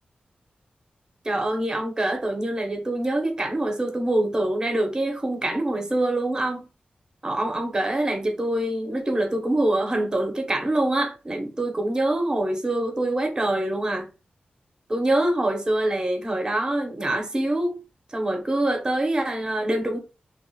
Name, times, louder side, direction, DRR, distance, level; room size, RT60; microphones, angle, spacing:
voice 1, 1.2-6.7 7.2-14.1 14.9-17.8 18.1-20.0, right 1 dB, 20° right, 0.9 m, -25 dB
3.0 x 2.4 x 3.9 m
wide cardioid pair, 140°, 3 cm